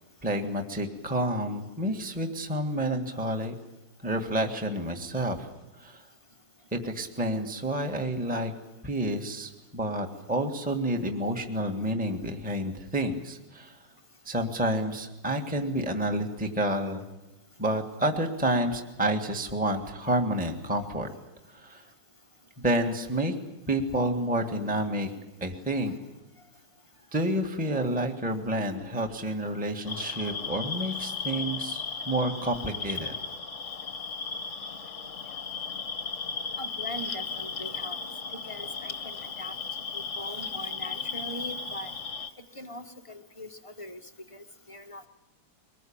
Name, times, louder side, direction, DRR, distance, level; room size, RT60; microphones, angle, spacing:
voice 1, 0.2-3.5 4.0-5.5 5.8-6.0 6.7-8.5 8.8-13.8 14.2-17.0 17.6-21.1 21.5-21.8 22.6-23.3 23.7-25.1 25.4-25.9 27.1-33.1, right 1 dB, 5° right, 4 dB, 1.6 m, -29 dB
sound 1, 29.8-42.3, left 5 dB, 45° left, 1.2 m, -36 dB
voice 2, 36.6-38.0 38.4-39.5 39.9-41.9 42.5-44.0 44.3-45.1, left 1 dB, 25° left, 6 dB, 0.8 m, -41 dB
23.5 x 20.0 x 8.8 m, 0.99 s
omnidirectional pair, 2.3 m